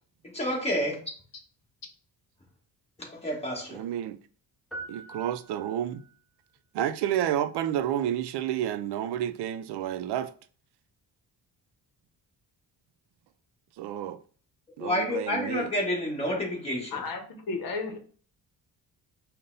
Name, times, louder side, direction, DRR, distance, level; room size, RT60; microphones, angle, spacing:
voice 1, 0.3-1.0 3.1-3.8 14.8-17.0, left 1 dB, 15° left, 1.4 m, -29 dB
voice 2, 3.7-4.2 4.9-6.0 6.7-10.3 13.8-14.2 14.8-15.7, right 11 dB, 80° right, 0.5 m, -30 dB
sound 1, 4.7-6.2, right 3 dB, ahead, 0.7 m, -43 dB
voice 3, 16.9-18.0, left 4 dB, 55° left, 0.9 m, -33 dB
5.3 x 2.2 x 3.9 m
cardioid pair, 165°, 40 cm